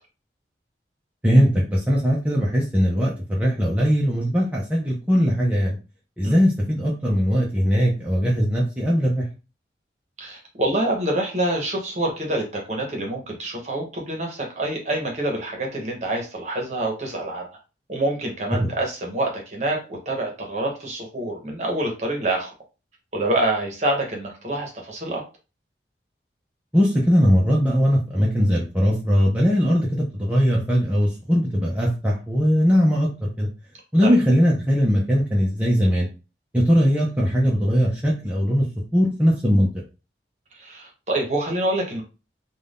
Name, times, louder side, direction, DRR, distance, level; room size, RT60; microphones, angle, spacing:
voice 1, 1.2-5.8 6.2-9.3 18.5-18.7 26.7-33.5 33.9-36.1 36.5-38.7 38.9-39.7, equal, 10° right, -4 dB, 0.5 m, -20 dB
voice 2, 10.2-17.5 17.9-22.5 23.1-25.2 34.0-34.2 40.5-42.0, right 1 dB, 40° right, 1 dB, 0.9 m, -26 dB
2.6 x 2.2 x 3.4 m, 0.31 s
head